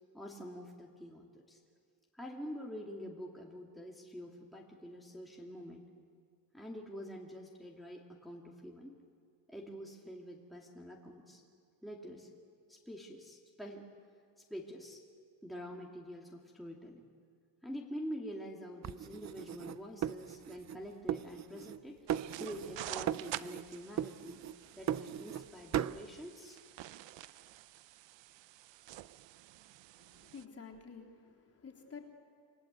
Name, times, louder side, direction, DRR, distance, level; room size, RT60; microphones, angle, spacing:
voice 1, 0.1-1.6 2.1-5.8 6.5-8.9 9.5-11.4 11.8-12.3 12.7-13.9 14.5-15.0 15.4-17.0 17.6-22.1 22.4-24.4 24.8-26.6, equal, ahead, -2 dB, 2.4 m, -46 dB
sound 1, 18.8-20.8 21.1-21.8 22.1-22.8 23.1-23.7 24.0-25.5 25.7-26.0, right 10 dB, 40° right, 0.6 m, -37 dB
sound 2, 22.1-30.5, right 14 dB, 75° right, 0.8 m, -48 dB
voice 2, 30.0-32.1, left 5 dB, 35° left, -1 dB, 3.7 m, -51 dB
28.0 x 22.5 x 8.2 m, 2.2 s
cardioid pair, 125°, 45 cm